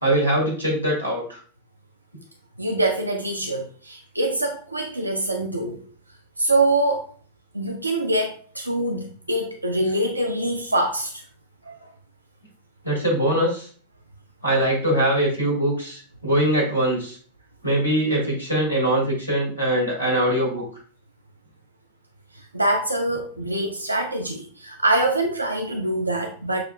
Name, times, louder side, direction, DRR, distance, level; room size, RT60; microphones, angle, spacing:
voice 1, 0.0-1.4 12.8-13.7 14.4-17.2 17.6-20.6, right 1 dB, 85° left, -2 dB, 1.4 m, -22 dB
voice 2, 2.6-5.8 6.4-7.1 7.5-11.2 11.7-11.9 22.3-26.6, right 1 dB, 85° right, 3 dB, 0.4 m, -24 dB
6.6 x 2.4 x 2.2 m, 0.44 s
figure-of-eight pair, 90°, 0 cm